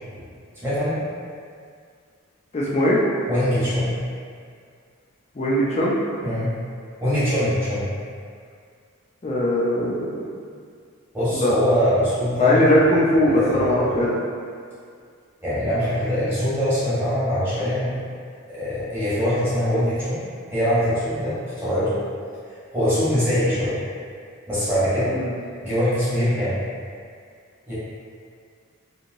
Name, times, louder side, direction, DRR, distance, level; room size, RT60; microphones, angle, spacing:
voice 1, 0.6-1.0 3.3-3.9 6.2-6.5 7.0-7.9 11.1-12.6 13.2-14.1 15.4-18.0 18.5-20.2 20.5-22.0 22.4-23.8 24.5-25.2 25.6-26.6 27.7-27.8, equal, 10° right, -13 dB, 1.0 m, -23 dB
voice 2, 2.5-3.0 5.4-6.0 9.2-10.2 11.3-11.6 12.4-14.2 25.2-25.3, left 1 dB, 30° left, -5 dB, 0.4 m, -20 dB
2.9 x 2.7 x 2.6 m, 2.2 s
head